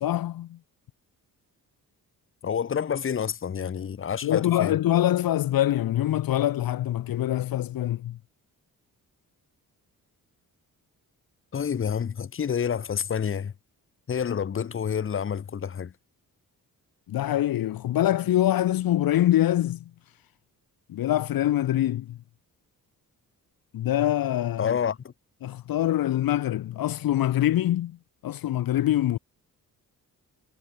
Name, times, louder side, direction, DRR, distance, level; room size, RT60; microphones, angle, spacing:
voice 1, 0.0-0.6 4.2-8.2 17.1-19.8 20.9-22.2 23.7-24.8 25.4-28.0 28.2-29.2, left 13 dB, 75° left, 0.8 m, -24 dB
voice 2, 2.4-4.8 11.5-13.5 14.1-15.9 24.6-25.1, left 7 dB, 35° left, 0.9 m, -28 dB
cardioid pair, 115°, 35 cm